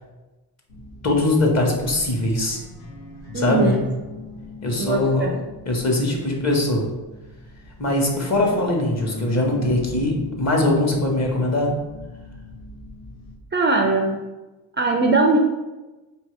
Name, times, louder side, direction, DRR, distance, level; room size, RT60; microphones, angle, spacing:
sound 1, 0.7-13.4, left 3 dB, 85° left, 1.0 m, -40 dB
voice 1, 1.0-2.6 3.3-3.7 4.6-5.3 5.6-6.9 7.8-11.7, left 2 dB, 35° left, 0 dB, 1.1 m, -21 dB
voice 2, 3.3-3.8 4.8-5.4 13.5-14.2 14.8-15.4, right 3 dB, 25° right, 1 dB, 0.4 m, -20 dB
4.5 x 2.7 x 3.2 m, 1.1 s
cardioid pair, 75°, 46 cm